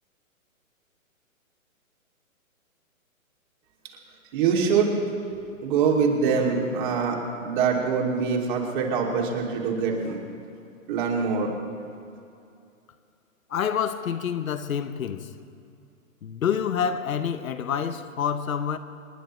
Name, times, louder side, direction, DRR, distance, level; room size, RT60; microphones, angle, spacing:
voice 1, 4.3-5.0 5.3-10.2 10.9-11.5, right 5 dB, 35° right, 2.6 m, -24 dB
voice 2, 13.5-15.3 16.2-18.8, left 8 dB, 75° left, 0.9 m, -27 dB
28.0 x 10.5 x 3.1 m
hypercardioid pair, 145°, 41 cm